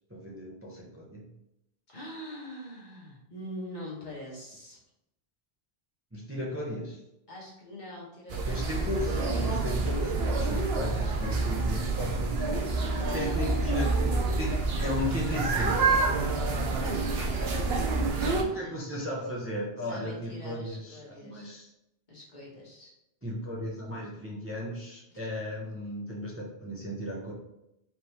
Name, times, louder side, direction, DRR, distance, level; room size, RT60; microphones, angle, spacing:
voice 1, 0.1-1.3 6.1-7.0 8.5-15.9 18.2-21.7 23.2-27.3, left 1 dB, 15° right, -4 dB, 0.8 m, -35 dB
voice 2, 1.9-4.8 7.3-9.0 12.8-13.5 16.2-19.0 19.8-21.5 22.1-22.9, left 1 dB, 45° left, -5 dB, 1.5 m, -44 dB
sound 1, 8.3-18.4, right 3 dB, 70° right, 0.9 m, -28 dB
4.9 x 3.5 x 3.0 m, 0.86 s
omnidirectional pair, 1.1 m